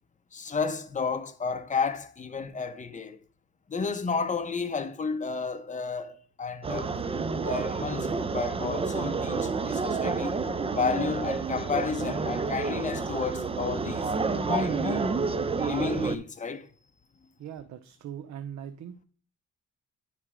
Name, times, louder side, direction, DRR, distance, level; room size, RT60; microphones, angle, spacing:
voice 1, 0.3-3.2 3.7-7.0 7.4-10.3 10.7-15.1 15.6-16.7, left 5 dB, 25° left, 0.8 m, -32 dB
sound 1, 6.6-16.2, right 4 dB, 20° right, 0.5 m, -29 dB
voice 2, 17.4-19.0, right 9 dB, 65° right, 0.6 m, -40 dB
9.7 x 3.3 x 4.9 m
cardioid pair, 90°, 30 cm